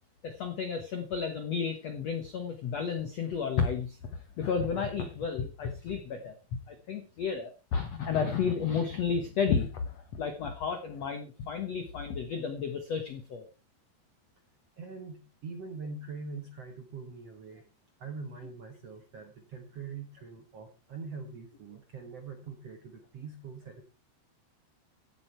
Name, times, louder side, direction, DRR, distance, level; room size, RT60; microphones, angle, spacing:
voice 1, 0.2-13.5, left 6 dB, 80° left, 7 dB, 1.5 m, -32 dB
voice 2, 14.8-17.6 18.0-23.8, right 4 dB, 65° right, 5 dB, 1.6 m, -43 dB
15.0 x 8.3 x 4.4 m, 0.32 s
omnidirectional pair, 5.0 m